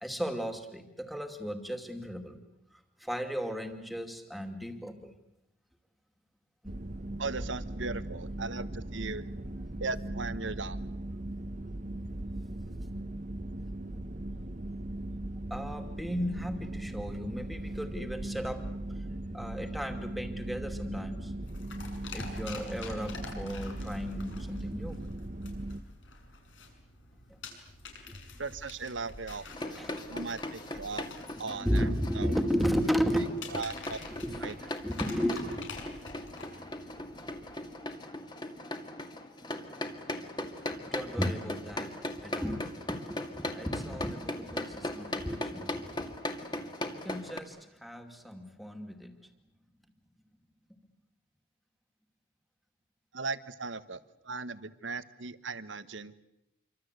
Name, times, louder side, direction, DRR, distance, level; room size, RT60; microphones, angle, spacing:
voice 1, 0.0-2.4 3.0-5.1 13.9-14.0 15.5-18.6 19.3-21.3 22.1-25.0 29.8-30.0 31.5-33.5 34.1-34.4 34.8-35.6 40.7-46.2 46.9-49.1, equal, ahead, 5 dB, 2.5 m, -34 dB
sound 1, 6.7-25.8, right 1 dB, 40° right, 1.0 m, -38 dB
voice 2, 7.2-9.3 9.8-10.8 28.4-29.8 30.1-31.0 31.4-31.9 32.2-32.3 33.5-34.0 34.4-34.5 53.1-54.0 54.2-56.1, right 4 dB, 75° right, 13 dB, 1.3 m, -37 dB
sound 2, 21.4-37.8, left 3 dB, 75° left, 6.3 m, -48 dB
sound 3, 29.5-47.4, left 1 dB, 20° left, 2.2 m, -39 dB
28.0 x 24.5 x 8.2 m, 0.86 s
head